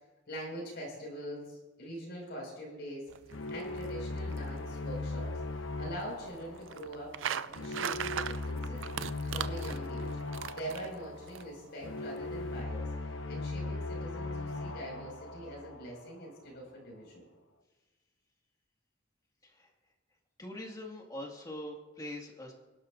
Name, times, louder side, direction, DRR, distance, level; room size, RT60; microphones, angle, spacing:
voice 1, 0.3-3.1 3.5-8.9 9.3-10.1 10.5-12.9 13.3-17.2, equal, 60° left, -2 dB, 5.5 m, -43 dB
sound 1, 3.1-11.4, right 8 dB, 75° right, 0.4 m, -41 dB
sound 2, 3.3-16.4, left 2 dB, 75° left, 0.9 m, -39 dB
voice 2, 20.4-22.5, left 1 dB, 20° left, 1 dB, 1.9 m, -43 dB
24.0 x 12.0 x 2.6 m, 1.2 s
head